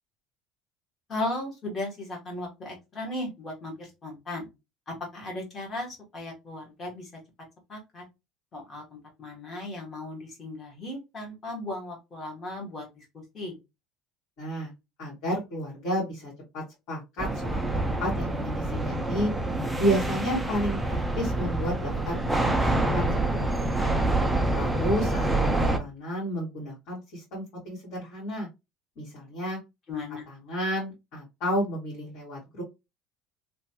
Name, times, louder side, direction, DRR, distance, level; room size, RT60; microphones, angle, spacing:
voice 1, 1.1-4.5 4.9-7.1 7.7-8.0 8.5-13.6 29.9-30.2, left 2 dB, 25° left, 0 dB, 1.1 m, -36 dB
voice 2, 14.4-14.7 15.0-19.3 19.8-23.9 24.5-28.5 29.0-29.6 29.9-32.6, equal, 55° left, -6 dB, 1.6 m, -32 dB
sound 1, 17.2-25.8, right 2 dB, 5° right, 0.3 m, -27 dB
3.0 x 2.2 x 2.7 m, 0.24 s
cardioid pair, 170°, 0 cm